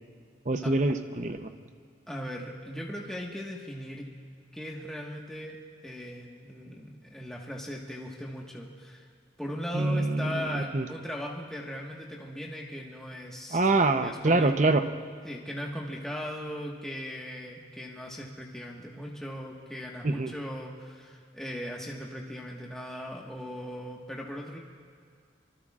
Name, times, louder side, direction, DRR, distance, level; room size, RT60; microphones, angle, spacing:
voice 1, 0.5-1.5 9.7-10.9 13.5-14.8 20.0-20.3, right 2 dB, 45° right, 8 dB, 0.8 m, -25 dB
voice 2, 2.1-4.1 4.5-5.6 5.8-9.1 9.4-13.7 14.0-14.5 15.2-24.6, equal, 5° left, -2 dB, 1.5 m, -38 dB
25.0 x 22.0 x 2.5 m, 2.2 s
head